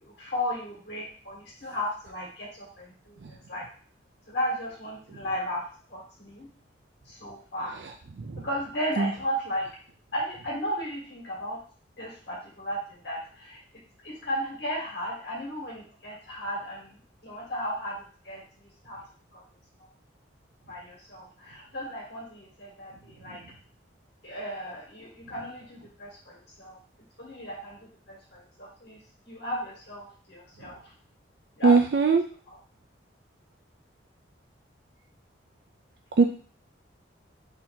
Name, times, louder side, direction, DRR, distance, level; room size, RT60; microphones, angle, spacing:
voice 1, 0.0-3.7 4.3-5.6 5.9-6.5 7.1-7.8 8.4-9.7 10.1-11.6 12.0-13.6 14.0-19.0 19.3-19.4 20.7-23.4 24.2-26.8 27.2-29.0 29.3-30.8 31.6-31.7 32.5-32.6, equal, 60° left, -4 dB, 1.8 m, -35 dB
voice 2, 31.6-32.2 36.2-36.3, right 4 dB, 60° right, 4 dB, 0.4 m, -20 dB
3.7 x 2.8 x 4.3 m, 0.42 s
head